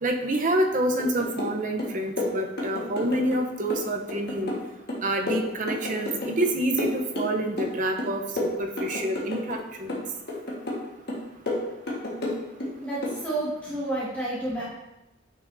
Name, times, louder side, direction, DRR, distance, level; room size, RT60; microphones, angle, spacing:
voice 1, 0.0-4.5 5.0-10.0, right 1 dB, 45° right, 3 dB, 0.8 m, -27 dB
sound 1, 1.0-1.5 1.8-3.4 3.7-6.5 6.8-7.7 8.0-9.6 9.9-10.8 11.1-12.7 13.0-13.2, left 1 dB, 55° left, 1.6 m, -30 dB
voice 2, 12.8-14.6, right 1 dB, 10° left, -9 dB, 1.7 m, -30 dB
9.1 x 6.2 x 2.7 m, 0.94 s
head